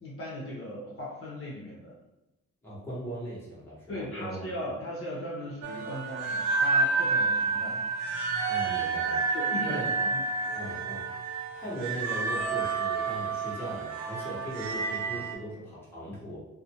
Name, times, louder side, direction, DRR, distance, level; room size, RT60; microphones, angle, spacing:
voice 1, 0.0-1.9 3.9-7.8 9.3-9.8 10.1-10.2 10.6-10.7, left 1 dB, 45° left, -5 dB, 0.8 m, -38 dB
voice 2, 2.6-4.4 8.5-9.2 9.6-9.9 10.5-11.1 11.5-16.4, right 1 dB, 5° left, -7 dB, 1.1 m, -39 dB
sound 1, 5.6-15.3, right 4 dB, 65° right, 0.5 m, -29 dB
2.5 x 2.1 x 2.9 m, 0.97 s
cardioid pair, 90°, 30 cm